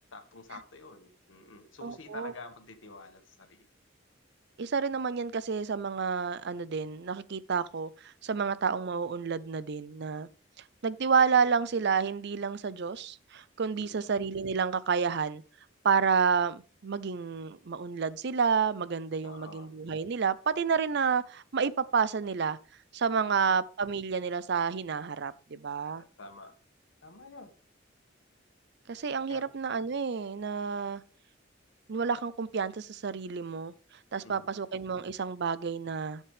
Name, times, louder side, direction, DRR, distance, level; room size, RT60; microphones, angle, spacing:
voice 1, 0.1-3.7 13.7-14.1 19.2-19.7 23.3-23.5 26.2-26.5 27.0-27.5 29.3-29.4 34.2-34.5, left 3 dB, 85° left, 1.7 m, -48 dB
voice 2, 1.8-2.3 4.6-10.3 10.8-15.4 15.8-22.6 22.9-26.0 28.9-31.0 31.9-33.7 34.1-36.2, right 6 dB, 60° right, 0.6 m, -30 dB
13.0 x 7.3 x 3.4 m
head